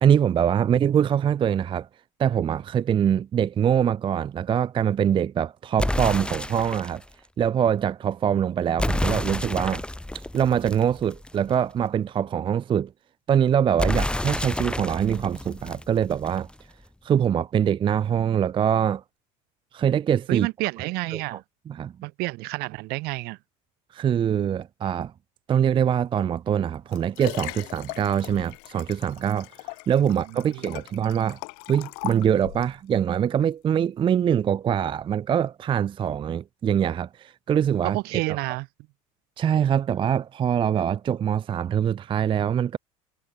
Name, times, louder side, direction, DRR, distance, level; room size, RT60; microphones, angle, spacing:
voice 1, 0.0-1.9 2.2-7.0 7.4-9.8 10.1-12.9 13.3-16.5 17.0-19.0 19.7-20.5 21.1-21.2 21.7-21.9 23.9-25.1 25.5-29.5 29.9-31.4 31.7-38.4 39.4-42.8, right 9 dB, 30° right, 0.4 m, -23 dB
sound 1, 5.8-7.0 8.8-11.5 13.8-16.5, left 1 dB, 5° left, 2.2 m, -29 dB
voice 2, 20.3-21.4 22.0-23.4 30.5-30.6 37.9-38.7, right 23 dB, 65° right, 1.7 m, -29 dB
Liquid, 26.5-32.8 33.4-33.5, left 40 dB or more, 70° left, 7.0 m, -39 dB
hypercardioid pair, 85°, 18 cm